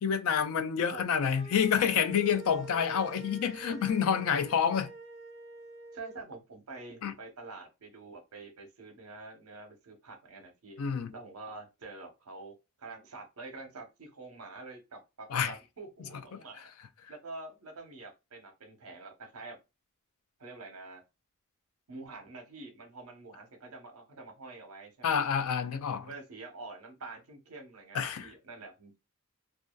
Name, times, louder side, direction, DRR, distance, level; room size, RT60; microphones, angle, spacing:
voice 1, 0.0-4.9 7.0-7.1 10.8-11.1 15.3-15.5 16.3-16.4 25.0-26.1 27.9-28.3, left 7 dB, 70° left, 0.3 m, -28 dB
sound 1, 1.3-6.2, right 3 dB, 30° right, 0.5 m, -47 dB
voice 2, 5.9-10.8 11.1-16.6 17.1-19.6 20.4-21.0 21.9-25.2 26.0-29.0, right 3 dB, 75° right, 0.8 m, -47 dB
2.6 x 2.3 x 2.2 m
head